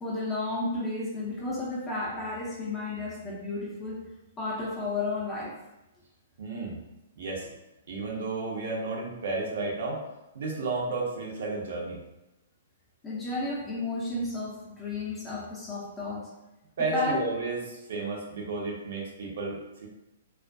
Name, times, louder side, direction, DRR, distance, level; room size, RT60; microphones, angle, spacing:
voice 1, 0.0-5.6 13.0-16.3 16.9-17.2, left 2 dB, 15° left, -5 dB, 0.6 m, -32 dB
voice 2, 6.4-6.8 7.2-7.5 7.9-10.0 10.3-12.0 16.8-19.9, right 3 dB, 55° right, -2 dB, 0.6 m, -32 dB
2.3 x 2.1 x 2.6 m, 0.95 s
figure-of-eight pair, 115°, 0 cm